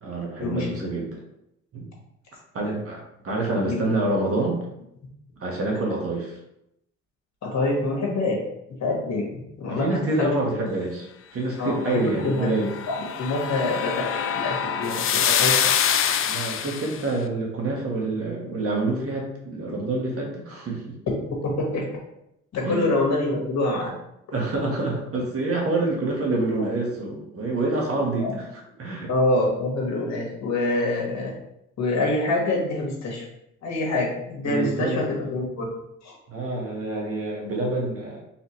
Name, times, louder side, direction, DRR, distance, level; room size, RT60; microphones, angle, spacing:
voice 1, 0.0-1.2 1.7-1.8 2.5-4.6 5.4-6.4 9.7-11.1 11.3-12.7 16.2-20.9 22.6-22.9 24.3-28.5 28.8-29.1 34.4-35.0 36.3-38.2, right 2 dB, 50° right, -1 dB, 1.4 m, -27 dB
voice 2, 3.5-3.8 7.4-8.4 8.8-10.7 11.6-12.5 12.9-15.6 21.6-21.8 22.5-23.9 28.2-28.3 29.1-31.3 31.8-33.3 33.6-35.7 36.0-36.2, left 2 dB, 60° left, -2 dB, 1.7 m, -26 dB
sound 1, 12.4-17.0, left 8 dB, 45° left, 0.4 m, -25 dB
4.2 x 3.7 x 3.1 m, 0.81 s
cardioid pair, 90°, 30 cm